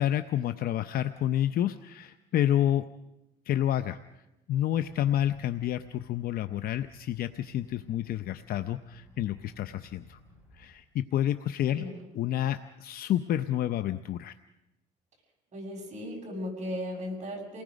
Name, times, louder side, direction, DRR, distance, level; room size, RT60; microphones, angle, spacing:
voice 1, 0.0-2.8 3.5-4.0 4.5-10.2 10.5-11.8 12.2-14.3, left 11 dB, 60° left, 10 dB, 0.7 m, -29 dB
sound 1, 4.7-10.7, left 2 dB, 10° right, 7.0 m, -56 dB
voice 2, 15.5-17.6, left 1 dB, 45° right, 1 dB, 6.8 m, -36 dB
29.0 x 19.0 x 5.2 m, 0.94 s
cardioid pair, 110°, 17 cm